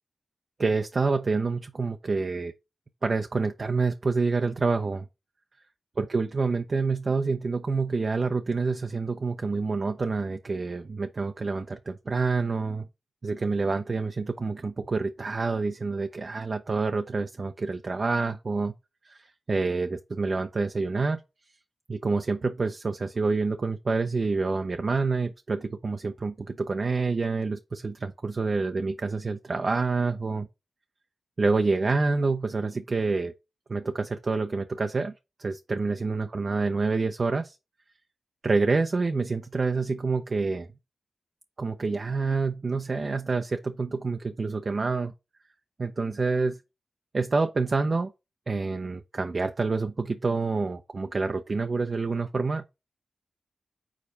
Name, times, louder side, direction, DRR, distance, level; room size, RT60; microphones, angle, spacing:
voice 1, 0.6-2.5 3.0-5.1 6.0-12.9 13.2-18.7 19.1-21.2 21.9-30.5 31.4-33.3 33.7-35.1 35.4-37.6 38.4-40.7 41.6-45.1 45.8-46.6 47.1-48.1 48.5-52.6, right 4 dB, 50° right, 0.5 m, -27 dB
4.9 x 4.0 x 5.6 m
cardioid pair, 50°, 0 cm